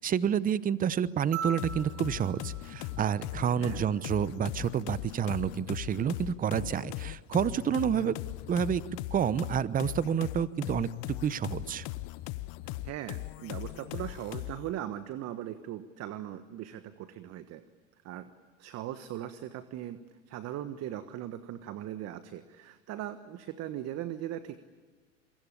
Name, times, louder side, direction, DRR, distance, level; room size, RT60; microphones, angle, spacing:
voice 1, 0.0-8.2 8.5-8.8 9.1-10.9 11.2-11.8, right 8 dB, 20° right, 18 dB, 0.9 m, -29 dB
sound 1, 1.3-3.9 5.5-5.6, right 7 dB, 65° right, 7.2 m, -41 dB
sound 2, 1.6-14.7, left 19 dB, 50° left, 1.1 m, -39 dB
voice 2, 12.8-17.6 18.0-18.3 18.6-24.6, right 12 dB, 40° right, 11 dB, 1.4 m, -39 dB
27.0 x 22.5 x 8.6 m, 1.4 s
hypercardioid pair, 95°, 39 cm